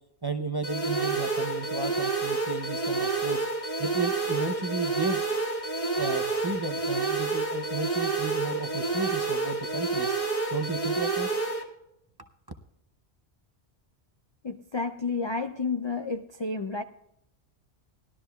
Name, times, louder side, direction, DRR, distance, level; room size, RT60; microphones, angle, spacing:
voice 1, 0.2-3.4 3.8-5.2 6.0-10.1 10.5-11.3 12.2-12.3, right 3 dB, 30° right, 6 dB, 0.4 m, -33 dB
sound 1, 0.6-11.6, right 3 dB, 30° left, 1.9 m, -29 dB
voice 2, 14.4-16.8, left 4 dB, 50° left, 8 dB, 0.3 m, -31 dB
19.0 x 12.5 x 2.3 m, 0.80 s
omnidirectional pair, 1.2 m